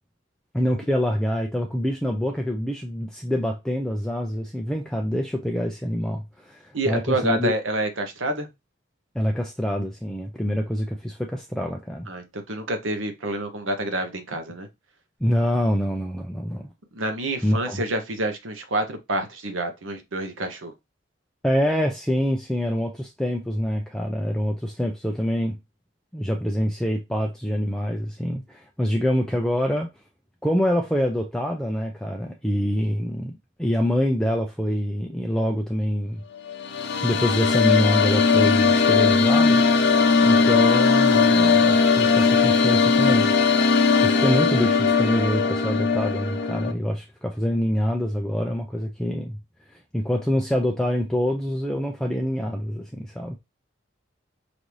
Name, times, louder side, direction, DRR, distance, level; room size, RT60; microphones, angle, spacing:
voice 1, 0.5-7.5 9.1-12.1 15.2-16.7 17.4-17.8 21.4-25.6 26.1-29.9 30.4-36.2 37.0-39.6 40.2-43.3 44.0-49.4 49.9-53.4, equal, 5° left, 0.4 m, -25 dB
voice 2, 6.7-8.5 12.1-14.7 16.9-20.7, right 1 dB, 85° right, 0.9 m, -28 dB
sound 1, 36.5-46.7, left 5 dB, 60° left, 0.9 m, -19 dB
5.1 x 2.7 x 3.1 m
head